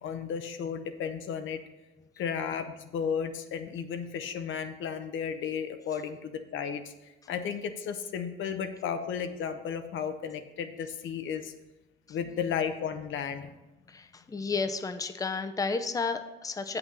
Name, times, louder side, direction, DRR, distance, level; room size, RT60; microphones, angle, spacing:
voice 1, 0.0-1.6 2.2-6.9 7.3-11.5 12.1-13.5, left 7 dB, 75° left, 8 dB, 0.8 m, -34 dB
voice 2, 13.9-16.8, left 4 dB, 15° left, 8 dB, 0.5 m, -32 dB
7.8 x 5.9 x 5.5 m, 1.0 s
cardioid pair, 90°, 20 cm